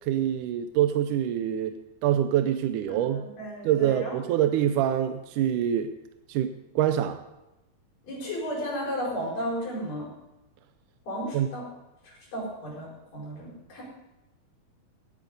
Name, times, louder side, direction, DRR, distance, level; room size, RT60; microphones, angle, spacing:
voice 1, 0.0-3.3 3.6-6.0 6.3-7.2 11.3-11.5, right 10 dB, 80° right, 9 dB, 1.9 m, -25 dB
voice 2, 2.9-4.2 8.0-10.1 11.1-11.6 12.0-13.8, equal, 60° left, -3 dB, 6.1 m, -34 dB
19.5 x 8.3 x 5.3 m, 0.97 s
omnidirectional pair, 4.3 m